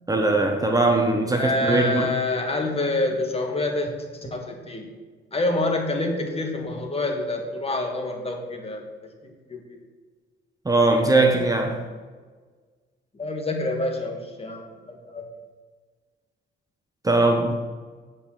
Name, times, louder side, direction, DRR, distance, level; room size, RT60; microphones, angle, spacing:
voice 1, 0.1-2.1 10.6-11.9 17.0-17.5, right 2 dB, 20° right, 3 dB, 1.1 m, -20 dB
voice 2, 1.4-3.9 4.2-4.9 5.3-9.8 13.1-15.3, left 2 dB, 30° left, 3 dB, 1.8 m, -27 dB
8.2 x 5.3 x 7.4 m, 1.5 s
cardioid pair, 90°, 20 cm